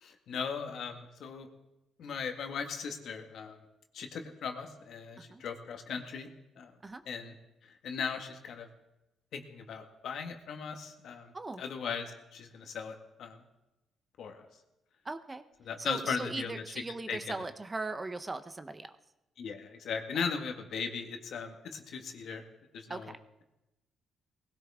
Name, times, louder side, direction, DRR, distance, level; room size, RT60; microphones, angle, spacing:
voice 1, 0.0-1.5 2.0-3.6 3.9-6.3 6.6-6.7 7.1-7.3 7.8-8.7 9.3-13.4 14.2-14.4 15.7-16.6 17.1-17.2 19.4-22.4 22.7-23.1, left 6 dB, 70° left, 5 dB, 1.8 m, -38 dB
voice 2, 15.0-15.4 15.8-18.9 22.9-23.2, right 3 dB, 25° right, 10 dB, 0.8 m, -39 dB
20.0 x 16.5 x 3.6 m, 0.96 s
cardioid pair, 90°, 0 cm